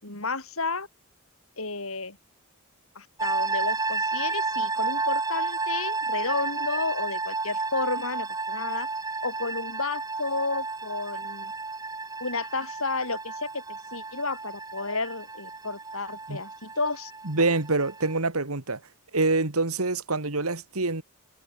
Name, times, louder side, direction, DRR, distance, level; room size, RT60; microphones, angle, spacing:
voice 1, 0.0-0.9 1.6-2.2 2.9-8.9 9.2-11.5 12.2-17.5, left 3 dB, 65° left, 6.7 m, -32 dB
sound 1, 3.2-18.2, right 3 dB, 15° right, 2.8 m, -32 dB
voice 2, 17.2-18.8 19.1-21.0, right 3 dB, 75° right, 2.3 m, -26 dB
head